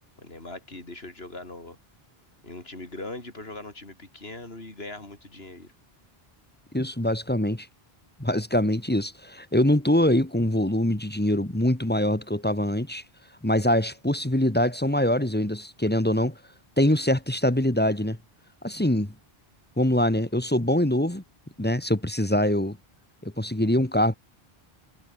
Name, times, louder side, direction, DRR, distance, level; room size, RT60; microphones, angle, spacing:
voice 1, 0.0-1.8 2.4-5.7, left 2 dB, 75° left, 4.8 m, -40 dB
voice 2, 6.7-7.7 8.2-13.0 13.4-16.4 16.8-18.2 18.6-19.1 19.8-21.2 21.6-22.8 23.2-24.1, left 1 dB, 10° left, 1.5 m, -24 dB
omnidirectional pair, 1.0 m